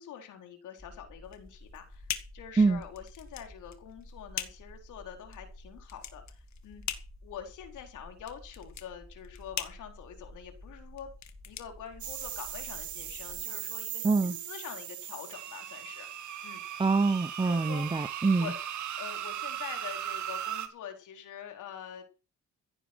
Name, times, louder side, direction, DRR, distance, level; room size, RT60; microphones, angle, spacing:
voice 1, 0.0-2.1 2.3-6.8 7.2-11.1 11.5-16.1 16.4-16.6 17.4-17.9 18.4-18.6 19.0-22.0, left 9 dB, 80° left, 4.3 m, -45 dB
sound 1, 0.8-13.4, left 1 dB, ahead, 3.7 m, -51 dB
sound 2, 1.2-12.5, left 10 dB, 65° left, 2.0 m, -42 dB
sound 3, 12.0-20.7, right 10 dB, 75° right, 2.0 m, -38 dB
voice 2, 14.0-14.4 16.8-18.5, right 4 dB, 15° right, 0.8 m, -25 dB
16.0 x 9.3 x 6.3 m
cardioid pair, 90°, 30 cm